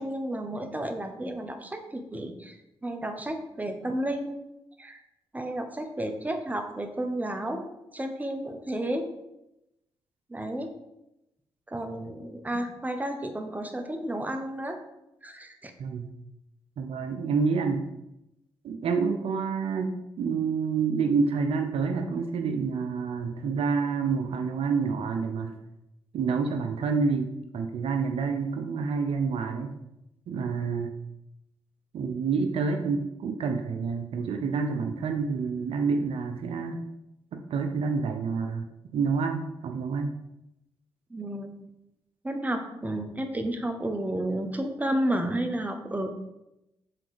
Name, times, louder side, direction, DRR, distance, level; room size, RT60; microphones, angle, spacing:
voice 1, 0.0-2.6 2.8-4.4 4.8-5.0 5.3-9.1 10.3-10.7 11.7-14.8 15.2-15.7 41.1-41.6 42.2-46.1, right 1 dB, 15° right, 5 dB, 1.0 m, -32 dB
voice 2, 16.8-17.8 18.6-25.5 26.1-29.7 30.3-31.0 31.9-36.8 37.3-38.7 38.9-40.1, right 5 dB, 70° right, 5 dB, 0.6 m, -28 dB
5.9 x 3.9 x 5.0 m, 0.89 s
supercardioid pair, 55°, 10 cm